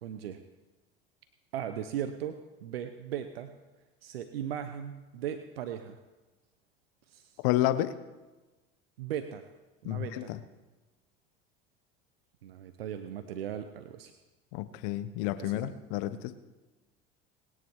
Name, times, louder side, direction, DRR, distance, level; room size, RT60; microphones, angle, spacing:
voice 1, 0.0-0.4 1.5-3.5 4.0-6.0 7.1-7.3 9.0-9.4 9.8-10.3 12.4-14.1 15.4-15.7, right 9 dB, 85° right, 9 dB, 0.9 m, -38 dB
voice 2, 7.4-7.9 9.8-10.4 14.5-16.3, left 14 dB, 65° left, 13 dB, 1.0 m, -30 dB
20.5 x 9.5 x 4.7 m, 1.2 s
hypercardioid pair, 80°, 29 cm